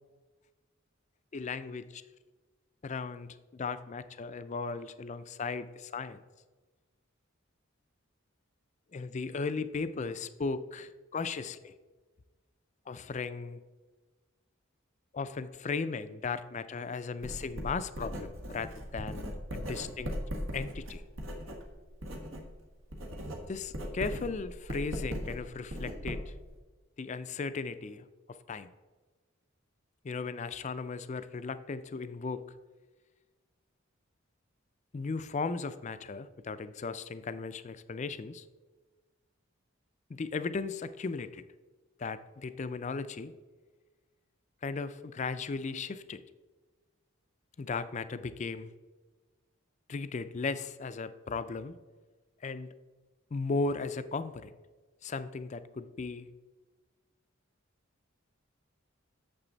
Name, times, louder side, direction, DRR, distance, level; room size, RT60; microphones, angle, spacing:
voice 1, 1.3-2.0 2.8-6.2 8.9-11.7 12.9-13.6 15.1-20.2 20.5-21.0 23.5-26.3 27.0-28.0 28.5-28.7 30.0-32.4 34.9-38.4 40.1-41.4 42.0-43.3 44.6-46.2 47.6-48.7 49.9-51.8 52.4-52.7 53.3-54.5 55.0-56.3, left 4 dB, 35° left, 13 dB, 0.4 m, -36 dB
Writing, 17.2-22.5 22.8-26.5, equal, 70° right, 1.4 m, -39 dB
8.9 x 6.8 x 4.0 m, 1.3 s
head